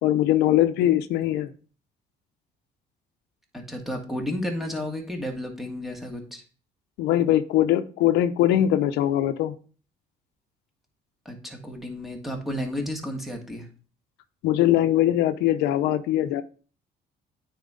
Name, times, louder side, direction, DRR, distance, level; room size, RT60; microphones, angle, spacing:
voice 1, 0.0-1.5 7.0-9.5 14.4-16.4, left 12 dB, 90° left, 11 dB, 0.6 m, -21 dB
voice 2, 3.5-6.4 11.3-13.7, left 1 dB, ahead, 2 dB, 1.8 m, -32 dB
9.2 x 4.4 x 3.7 m, 0.39 s
cardioid pair, 110°, 17 cm